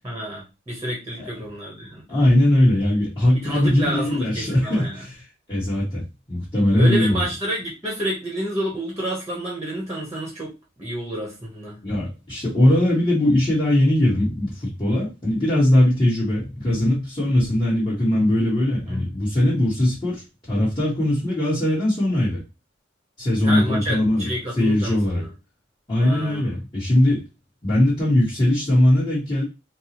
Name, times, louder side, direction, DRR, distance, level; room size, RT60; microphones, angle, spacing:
voice 1, 0.0-2.2 3.3-5.0 6.8-11.8 18.9-19.1 23.4-25.3 26.0-26.6, equal, 15° right, 0.9 m, -29 dB
voice 2, 2.1-5.2 5.5-6.0 6.3-7.2 11.8-22.4 23.2-24.3 24.6-25.2 25.9-27.3 27.6-29.4, left 1 dB, 25° left, 1.4 m, -20 dB
4.4 x 2.0 x 2.9 m
head